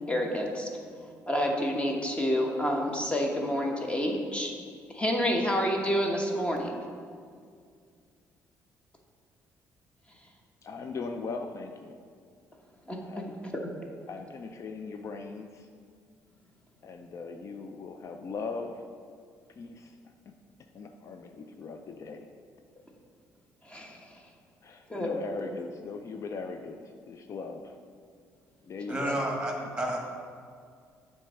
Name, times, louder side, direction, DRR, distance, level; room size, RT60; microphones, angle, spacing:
voice 1, 0.1-0.7 1.3-4.6 4.9-6.7 12.9-13.2 23.6-24.1 24.9-25.2 28.9-29.0, equal, 20° left, 1 dB, 1.1 m, -29 dB
voice 2, 10.6-12.0 13.1-13.4 14.1-15.7 16.8-18.8 19.6-20.0 20.7-22.3 24.6-26.8 27.1-27.7 28.6-29.2, left 4 dB, 50° left, 5 dB, 0.4 m, -39 dB
voice 3, 28.9-30.0, right 1 dB, 15° right, 0 dB, 1.5 m, -30 dB
7.3 x 3.3 x 5.6 m, 2.1 s
supercardioid pair, 70°, 6 cm